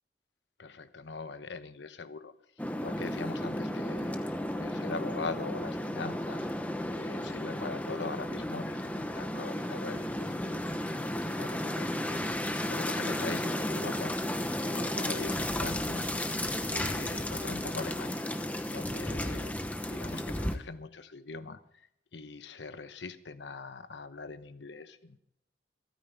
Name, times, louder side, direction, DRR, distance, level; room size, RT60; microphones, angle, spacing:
voice 1, 0.6-2.3 2.8-10.7 11.2-12.3 12.7-25.2, left 4 dB, 85° left, 11 dB, 1.0 m, -42 dB
sound 1, 2.6-20.5, left 1 dB, 10° left, 0.9 m, -33 dB
26.5 x 9.3 x 3.5 m, 0.76 s
head